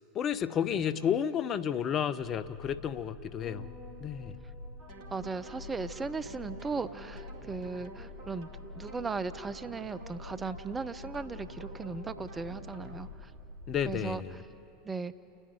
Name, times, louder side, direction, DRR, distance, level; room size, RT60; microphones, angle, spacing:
voice 1, 0.1-3.7 4.0-4.4 13.7-14.4, left 8 dB, 35° left, 13 dB, 0.6 m, -31 dB
sound 1, 2.2-14.1, left 3 dB, 60° right, 2.4 m, -47 dB
sound 2, 3.4-9.8, left 1 dB, ahead, 6.0 m, -56 dB
sound 3, 4.8-13.0, right 1 dB, 45° right, 2.6 m, -50 dB
voice 2, 5.1-8.5 8.7-13.3 13.8-14.2 14.8-15.1, right 4 dB, 15° right, 12 dB, 0.6 m, -37 dB
29.5 x 9.9 x 9.7 m, 2.7 s
figure-of-eight pair, 80°, 0 cm